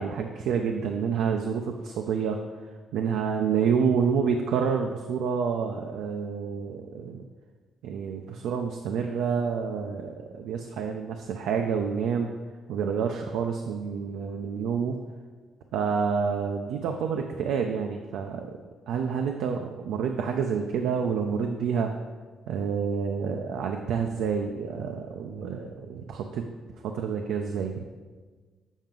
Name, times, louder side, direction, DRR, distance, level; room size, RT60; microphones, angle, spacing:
voice 1, 0.0-2.4 2.9-7.3 7.8-12.3 12.7-15.0 15.7-18.6 18.9-21.9 22.5-26.4 26.8-27.7, right 6 dB, 85° right, 4 dB, 0.4 m, -28 dB
7.2 x 4.5 x 3.8 m, 1.4 s
cardioid pair, 90°, 0 cm